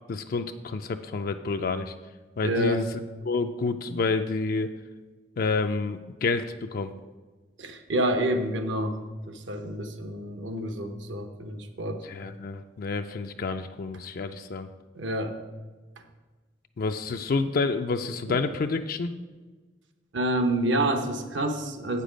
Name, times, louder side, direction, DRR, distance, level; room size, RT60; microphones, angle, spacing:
voice 1, 0.1-1.9 2.4-2.9 3.2-4.7 5.4-7.0 11.8-14.7 16.8-19.1, left 4 dB, 50° left, 7 dB, 0.4 m, -29 dB
voice 2, 2.4-2.9 7.6-9.0 9.3-12.0 15.0-15.3 18.3-18.4 20.1-22.0, right 1 dB, 75° right, 7 dB, 0.9 m, -28 dB
8.0 x 6.7 x 5.1 m, 1.3 s
head